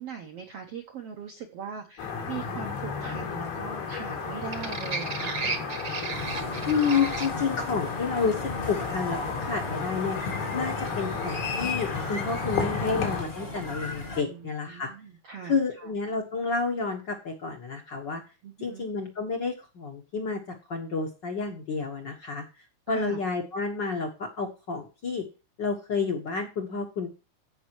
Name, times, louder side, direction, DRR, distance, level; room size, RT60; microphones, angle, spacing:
voice 1, 0.0-5.4 10.8-11.1 14.2-15.9 18.4-18.9 22.9-23.2, right 6 dB, 75° right, 4 dB, 1.4 m, -40 dB
sound 1, 2.0-13.2, left 5 dB, 90° left, 4.3 m, -33 dB
sound 2, 4.2-13.9, right 4 dB, 55° right, 1.2 m, -38 dB
sound 3, 6.1-14.2, left 3 dB, 45° left, 0.7 m, -37 dB
voice 2, 6.6-10.2 10.5-14.9 15.4-18.2 18.6-22.4 22.9-25.2 25.6-27.1, left 5 dB, 70° left, 2 dB, 1.0 m, -30 dB
16.0 x 5.4 x 3.0 m, 0.30 s
omnidirectional pair, 4.4 m